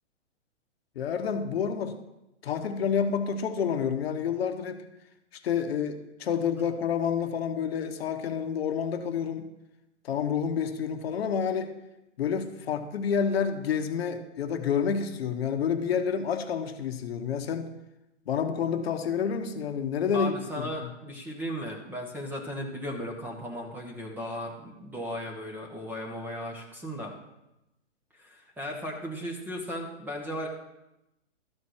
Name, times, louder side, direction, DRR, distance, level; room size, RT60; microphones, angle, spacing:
voice 1, 1.0-2.0 2.4-4.8 5.3-9.5 10.0-11.7 12.2-17.7 18.3-20.9, left 7 dB, 55° left, 7 dB, 1.0 m, -29 dB
voice 2, 20.1-27.1 28.1-30.5, equal, 5° right, 0 dB, 0.9 m, -36 dB
12.5 x 4.3 x 6.3 m, 0.91 s
hypercardioid pair, 145°, 37 cm